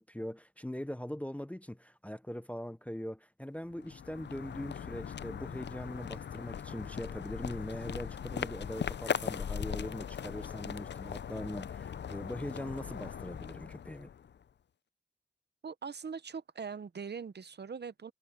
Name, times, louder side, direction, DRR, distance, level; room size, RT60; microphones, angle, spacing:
voice 1, 0.0-14.1, equal, 5° left, 0.4 m, -41 dB
sound 1, 3.7-14.4, left 8 dB, 80° left, 0.4 m, -39 dB
voice 2, 15.6-18.1, right 6 dB, 70° right, 0.7 m, -41 dB
wide cardioid pair, 90°, 18 cm